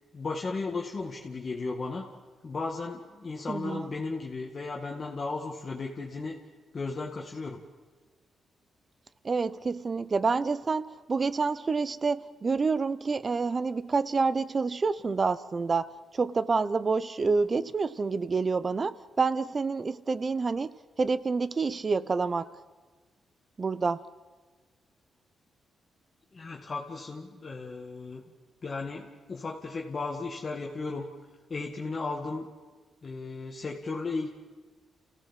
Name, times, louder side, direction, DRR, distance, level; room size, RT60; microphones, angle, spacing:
voice 1, 0.1-2.1 2.4-6.4 6.7-7.6 26.3-28.2 28.6-31.1 31.5-32.5 33.0-34.3, left 3 dB, 40° left, -1 dB, 2.0 m, -35 dB
voice 2, 3.5-3.9 9.2-22.5 23.6-24.1, right 4 dB, 40° right, 17 dB, 0.8 m, -28 dB
29.0 x 16.0 x 7.5 m, 1.4 s
cardioid pair, 80°, 0 cm